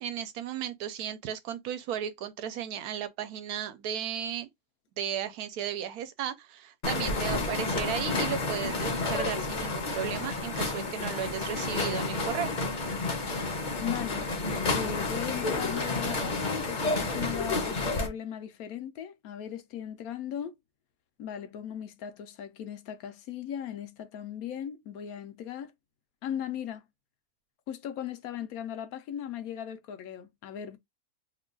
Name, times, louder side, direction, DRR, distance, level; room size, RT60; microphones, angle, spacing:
voice 1, 0.0-4.5 5.0-12.5, right 9 dB, 85° right, 1.1 m, -35 dB
sound 1, 6.8-18.1, left 3 dB, 40° left, 0.8 m, -30 dB
voice 2, 13.8-14.3 14.7-20.6 21.2-25.7 26.2-26.8 27.7-30.8, left 9 dB, 75° left, 1.1 m, -38 dB
3.0 x 2.3 x 3.7 m
omnidirectional pair, 1.6 m